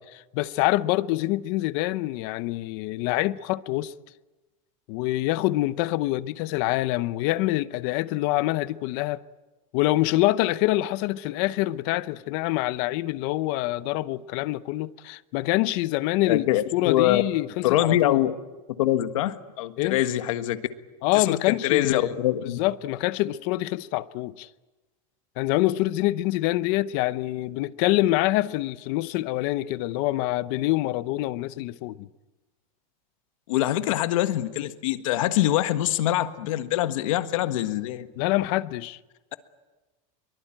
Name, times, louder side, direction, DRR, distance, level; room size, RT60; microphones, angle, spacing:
voice 1, 0.3-3.9 4.9-9.2 9.7-18.2 19.8-20.0 21.0-22.2 22.4-24.5 25.4-32.1 38.2-39.0, left 17 dB, 45° left, 0.7 m, -25 dB
voice 2, 16.2-17.2 17.6-18.4 18.8-20.6 21.1-22.6 33.5-38.1, left 13 dB, 70° left, 1.6 m, -24 dB
23.5 x 23.0 x 8.9 m
supercardioid pair, 175°, 18 cm